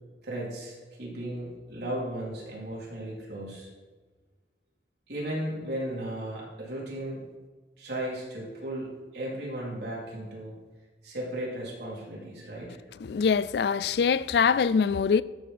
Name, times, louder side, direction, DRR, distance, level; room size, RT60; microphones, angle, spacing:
voice 1, 0.2-3.7 5.1-7.2 7.8-8.9 9.1-10.5 11.0-12.8, right 1 dB, 65° right, 3.9 m, -35 dB
voice 2, 13.0-15.2, left 6 dB, 65° left, 0.3 m, -23 dB
13.0 x 5.7 x 5.4 m
head